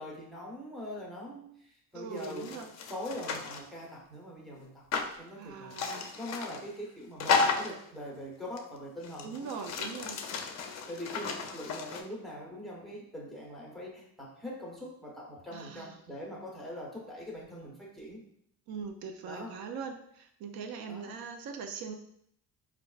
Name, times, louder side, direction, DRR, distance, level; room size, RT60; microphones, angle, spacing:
voice 1, 0.0-2.6 2.9-4.8 5.2-5.8 6.2-9.6 10.9-18.2 19.2-19.6 20.8-21.1, left 1 dB, ahead, -3 dB, 0.8 m, -42 dB
voice 2, 1.9-2.7 5.4-6.1 9.2-10.2 15.5-16.0 18.7-21.9, right 5 dB, 75° right, 4 dB, 0.5 m, -41 dB
sound 1, 2.2-3.7 4.9-5.1 5.7-6.6 7.2-7.8 8.6-8.7 9.0-12.0, left 5 dB, 50° left, 0.5 m, -33 dB
4.5 x 2.4 x 2.3 m, 0.70 s
cardioid pair, 130°, 36 cm